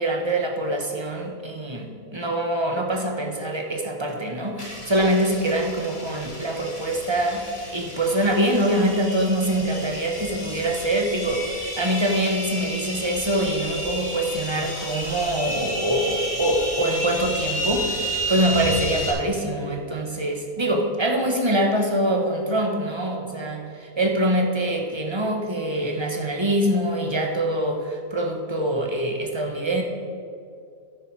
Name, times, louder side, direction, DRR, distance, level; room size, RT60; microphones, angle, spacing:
voice 1, 0.0-29.8, right 1 dB, 20° right, 1 dB, 1.1 m, -24 dB
sound 1, 4.6-19.1, equal, 25° left, 1.6 m, -32 dB
14.0 x 6.5 x 4.7 m, 2.4 s
omnidirectional pair, 1.4 m